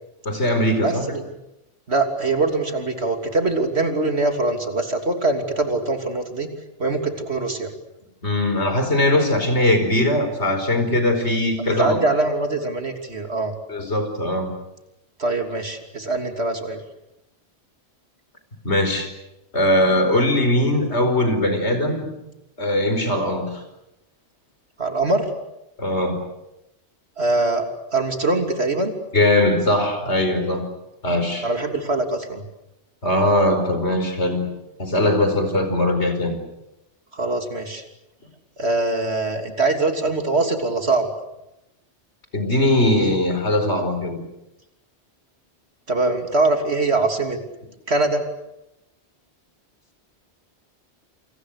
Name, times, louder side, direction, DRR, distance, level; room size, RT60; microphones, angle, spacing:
voice 1, 0.3-1.1 8.2-12.0 13.7-14.5 18.6-19.1 19.5-22.1 22.6-23.5 25.8-26.2 29.1-30.7 31.0-31.5 33.0-34.5 34.8-36.4 42.3-44.2, left 1 dB, 75° left, 7 dB, 5.3 m, -20 dB
voice 2, 0.8-1.3 1.9-6.5 6.8-7.7 11.7-13.5 15.2-16.8 24.8-25.3 27.2-28.9 31.4-32.4 37.1-37.8 38.6-41.1 45.9-47.4 47.9-48.2, right 2 dB, 70° right, 5 dB, 3.4 m, -23 dB
28.5 x 27.5 x 6.7 m, 0.89 s
omnidirectional pair, 1.1 m